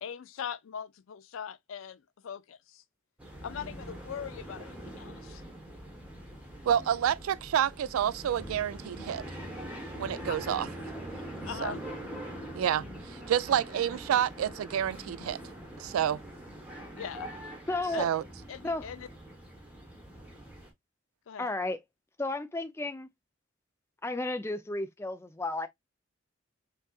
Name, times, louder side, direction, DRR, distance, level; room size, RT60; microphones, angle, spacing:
voice 1, 0.0-2.8 3.4-5.4 10.3-10.4 11.4-11.8 17.0-17.3 17.9-18.1 18.5-19.1 21.3-21.5, left 8 dB, 75° left, 0.4 m, -41 dB
sound 1, 3.2-20.7, right 1 dB, 5° right, 1.0 m, -43 dB
voice 2, 6.7-9.2 10.0-10.7 11.6-11.7 12.6-15.4 15.8-16.2 18.0-18.2, right 10 dB, 90° right, 0.3 m, -29 dB
voice 3, 17.7-18.1 18.6-18.9 21.4-21.8 22.2-23.1 24.0-25.7, left 2 dB, 10° left, 0.4 m, -33 dB
5.3 x 2.4 x 2.3 m
head